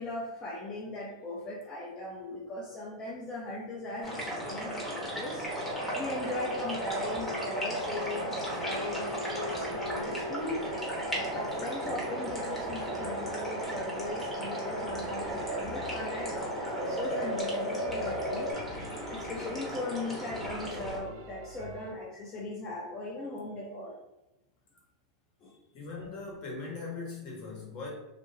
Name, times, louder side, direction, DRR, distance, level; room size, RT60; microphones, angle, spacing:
voice 1, 0.0-5.5 5.9-10.6 11.1-24.0 25.4-25.6, left 2 dB, 25° left, -5 dB, 0.6 m, -39 dB
sound 1, 4.0-21.0, equal, 5° left, 0.9 m, -37 dB
sound 2, 5.4-18.5, right 1 dB, 80° right, 1.0 m, -37 dB
sound 3, 11.4-21.9, right 2 dB, 55° right, 0.4 m, -51 dB
voice 2, 25.7-27.9, left 4 dB, 45° left, -2 dB, 1.1 m, -40 dB
2.4 x 2.2 x 3.1 m, 0.97 s
hypercardioid pair, 120°, 2 cm